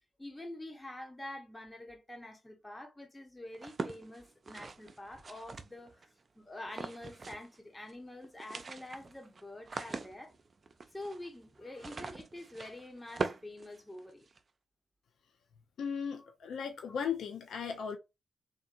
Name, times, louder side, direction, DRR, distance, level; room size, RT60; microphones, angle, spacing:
voice 1, 0.2-10.3 10.9-14.3 16.2-16.3 16.8-16.9, left 1 dB, 20° left, 0.9 m, -47 dB
sound 1, 3.5-6.1 6.7-7.6 7.8-7.9 8.2-14.4, right 4 dB, 50° right, 0.4 m, -42 dB
voice 2, 15.8-18.0, left 7 dB, 75° left, 0.4 m, -36 dB
2.8 x 2.5 x 2.5 m
supercardioid pair, 40°, 0 cm